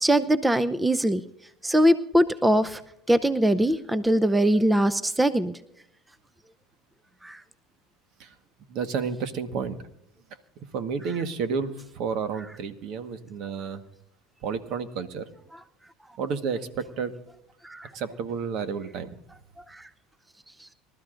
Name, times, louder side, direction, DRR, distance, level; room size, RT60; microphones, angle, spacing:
voice 1, 0.0-1.2 1.6-2.8 3.1-5.5 7.2-7.4 17.6-17.9 19.7-19.8, right 1 dB, 10° right, 15 dB, 0.6 m, -22 dB
voice 2, 8.7-9.8 10.7-13.8 14.4-15.3 16.2-17.1 17.9-19.1, right 6 dB, 60° right, 10 dB, 1.4 m, -31 dB
25.5 x 13.0 x 2.6 m, 0.76 s
hypercardioid pair, 90°, 0 cm